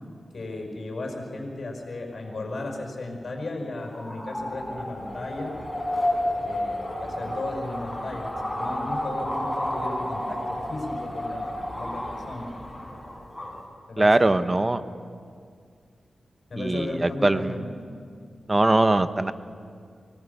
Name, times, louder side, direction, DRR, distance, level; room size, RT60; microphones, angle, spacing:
voice 1, 0.3-5.6 6.4-12.5 13.4-14.4 16.5-17.7, left 2 dB, 60° left, 2 dB, 5.4 m, -35 dB
sound 1, 3.8-13.6, left 1 dB, 15° left, 7.4 m, -31 dB
voice 2, 14.0-14.8 16.6-17.7 18.5-19.3, right 2 dB, 30° right, 11 dB, 1.1 m, -21 dB
24.5 x 18.5 x 6.9 m, 2.2 s
cardioid pair, 50°, 0 cm